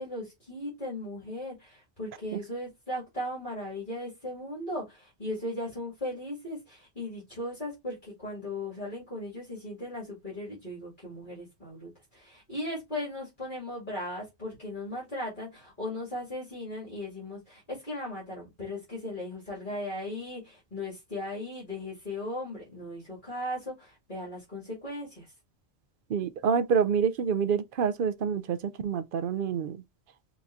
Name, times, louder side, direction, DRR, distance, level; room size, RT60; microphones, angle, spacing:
voice 1, 0.0-25.3, left 1 dB, 45° left, 2.4 m, -37 dB
voice 2, 26.1-29.8, right 6 dB, 60° right, 0.7 m, -27 dB
5.8 x 3.0 x 2.5 m
omnidirectional pair, 1.1 m